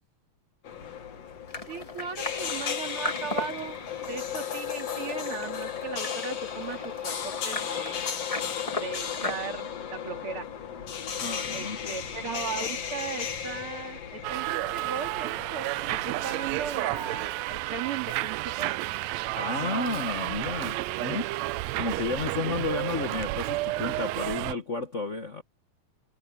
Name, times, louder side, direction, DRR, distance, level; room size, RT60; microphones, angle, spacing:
sound 1, 0.6-17.3, left 8 dB, 55° left, 3.0 m, -35 dB
sound 2, 1.5-9.3, left 2 dB, 20° left, 0.9 m, -38 dB
voice 1, 1.7-3.8 4.1-8.0 8.7-10.5 11.5-18.7, right 6 dB, 45° right, 3.0 m, -37 dB
voice 2, 11.2-12.0 19.3-25.4, left 3 dB, 80° left, 0.6 m, -32 dB
Subway metro underground, 14.2-24.5, right 18 dB, 80° right, 1.6 m, -31 dB
omnidirectional pair, 3.5 m